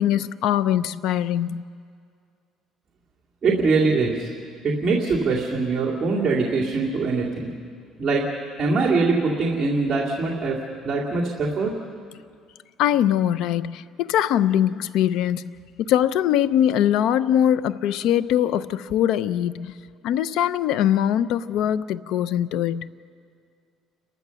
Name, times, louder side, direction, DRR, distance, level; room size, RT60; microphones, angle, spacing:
voice 1, 0.0-1.6 12.8-15.5 15.8-19.7 20.0-22.9, left 10 dB, 70° left, 16 dB, 0.6 m, -22 dB
voice 2, 3.4-4.3 4.6-7.5 8.0-8.2 8.6-10.6 10.8-11.7, right 3 dB, 25° right, -6 dB, 2.3 m, -22 dB
30.0 x 14.0 x 7.0 m, 2.2 s
cardioid pair, 145°, 0 cm